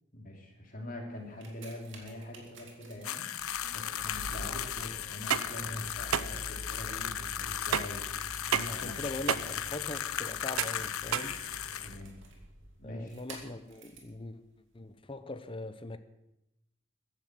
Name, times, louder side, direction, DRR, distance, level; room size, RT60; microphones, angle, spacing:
voice 1, 0.1-8.0 8.3-8.4 8.7-9.0 11.8-12.2 12.8-13.2, left 1 dB, 40° left, 1 dB, 3.3 m, -44 dB
sound 1, 1.2-14.2 14.9-15.0, right 1 dB, 60° right, 2.9 m, -48 dB
sound 2, 3.0-12.0, left 10 dB, 80° left, 0.7 m, -37 dB
sound 3, 5.1-12.0, right 8 dB, 80° right, 0.6 m, -34 dB
voice 2, 8.5-11.4 12.8-14.4 14.7-16.0, left 2 dB, 25° left, 11 dB, 0.8 m, -41 dB
14.5 x 11.0 x 7.6 m, 0.90 s
head